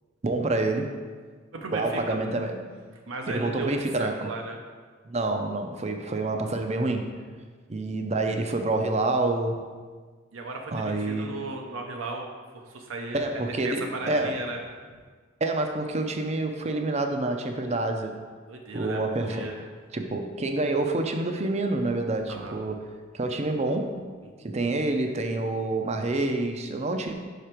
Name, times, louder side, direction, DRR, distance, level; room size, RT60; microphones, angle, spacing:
voice 1, 0.2-1.0 1.7-2.6 3.3-4.3 5.0-7.1 7.7-9.6 10.7-11.3 13.1-14.4 15.4-18.2 18.7-19.5 19.9-22.9 23.1-24.0 24.4-27.1, right 2 dB, 35° right, 5 dB, 0.5 m, -27 dB
voice 2, 1.5-2.2 3.1-4.6 10.3-12.3 12.5-13.3 13.6-14.6 18.5-19.0 19.3-19.5 22.3-22.6 24.2-24.3, right 3 dB, 80° right, 2 dB, 0.7 m, -35 dB
5.8 x 5.0 x 4.4 m, 1.5 s
head